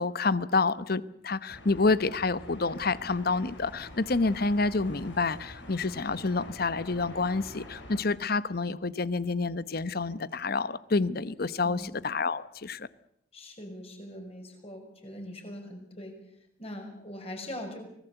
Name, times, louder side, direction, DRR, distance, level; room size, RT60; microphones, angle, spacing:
voice 1, 0.0-12.9, left 3 dB, 55° left, 0.9 m, -28 dB
sound 1, 1.5-8.0, left 1 dB, 85° left, 6.5 m, -46 dB
voice 2, 11.6-12.0 13.3-16.1 16.6-17.8, left 1 dB, 35° left, 6.0 m, -41 dB
25.0 x 18.5 x 8.1 m
head